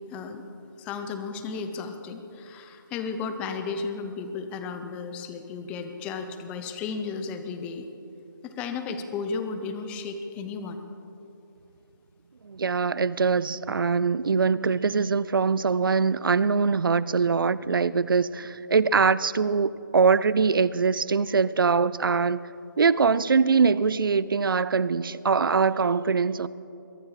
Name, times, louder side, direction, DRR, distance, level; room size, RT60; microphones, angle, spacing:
voice 1, 0.1-0.5 0.8-7.9 8.4-10.8, left 5 dB, 10° left, 0.7 m, -34 dB
voice 2, 12.4-22.4 22.8-26.5, right 5 dB, 85° right, 0.5 m, -23 dB
22.5 x 11.5 x 4.9 m
hypercardioid pair, 160°, 11 cm